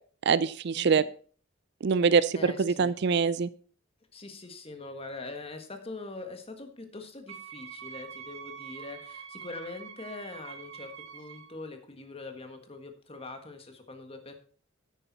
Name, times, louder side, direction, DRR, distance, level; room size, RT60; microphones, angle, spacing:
voice 1, 0.3-1.0 1.8-3.5, right 5 dB, 60° right, 17 dB, 0.4 m, -24 dB
voice 2, 2.3-2.9 4.1-14.3, left 3 dB, 30° left, 6 dB, 1.5 m, -43 dB
Wind instrument woodwind instrument, 7.3-11.6, right 7 dB, 90° right, 1.5 m, -45 dB
10.0 x 9.2 x 4.1 m, 0.43 s
head